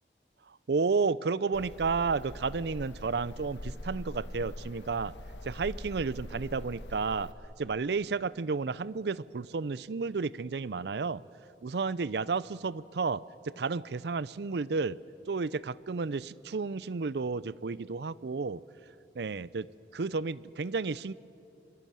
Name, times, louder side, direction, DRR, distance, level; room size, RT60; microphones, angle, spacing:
voice 1, 0.5-5.1 5.4-7.3 7.6-11.2 11.6-15.0 15.3-18.6 19.2-21.1, right 4 dB, 70° right, 19 dB, 0.5 m, -32 dB
sound 1, 1.5-7.3, left 1 dB, 85° left, 1.2 m, -43 dB
26.5 x 22.0 x 7.5 m, 2.8 s
head